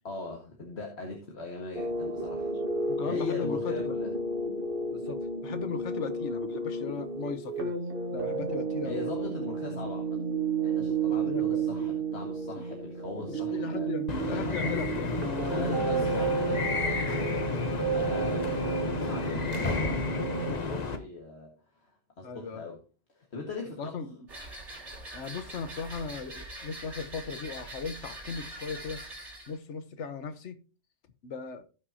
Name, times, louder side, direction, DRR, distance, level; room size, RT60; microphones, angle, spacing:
voice 1, 0.0-2.6 3.0-4.1 8.8-10.2 10.6-13.9 14.3-14.8 15.5-17.1 17.9-20.0 20.5-22.8 23.1-24.0, left 3 dB, 65° left, 1.9 m, -40 dB
sound 1, 1.7-20.5, right 4 dB, 50° right, 1.6 m, -32 dB
voice 2, 2.9-4.0 4.9-7.8 8.1-9.0 11.1-11.7 12.6-12.7 13.3-15.1 15.5-16.0 22.2-22.7 23.8-24.3 25.1-29.0 29.5-30.6 31.2-31.6, left 5 dB, 80° left, 1.3 m, -37 dB
sound 2, 14.1-21.0, left 4 dB, 40° left, 1.0 m, -31 dB
sound 3, 24.3-29.6, right 1 dB, 80° right, 3.4 m, -43 dB
17.0 x 5.9 x 2.8 m
omnidirectional pair, 1.2 m